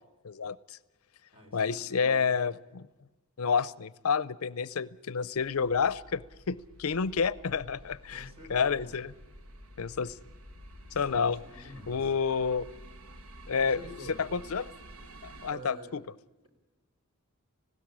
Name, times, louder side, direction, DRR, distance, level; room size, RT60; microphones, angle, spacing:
voice 1, 0.2-0.6 1.5-2.9 3.4-9.1 9.8-10.1 10.9-11.4 11.9-12.6 13.5-13.8 14.3-14.7 15.4-16.0, left 5 dB, 75° left, 19 dB, 0.6 m, -29 dB
voice 2, 1.3-2.4 8.0-8.9 10.9-12.1 13.5-14.3 15.5-16.0, equal, 25° right, 3 dB, 4.5 m, -47 dB
sound 1, 5.3-10.9, left 1 dB, 10° left, 3.9 m, -56 dB
sound 2, 5.8-15.5, right 1 dB, 75° right, 1.3 m, -51 dB
19.5 x 16.5 x 8.7 m, 1.1 s
head